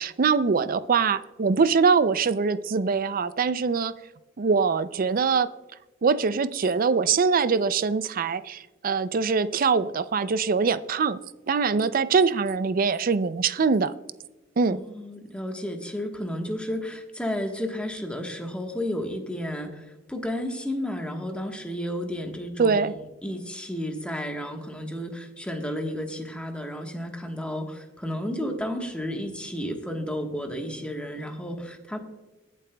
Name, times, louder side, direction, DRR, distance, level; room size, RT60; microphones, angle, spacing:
voice 1, 0.0-3.9 4.4-5.5 6.0-11.2 11.5-13.9 14.6-14.8 22.6-22.9, right 5 dB, 50° right, 14 dB, 0.4 m, -23 dB
voice 2, 14.7-23.0 23.2-32.0, equal, 5° left, 3 dB, 1.3 m, -32 dB
21.0 x 7.5 x 2.3 m, 1.1 s
head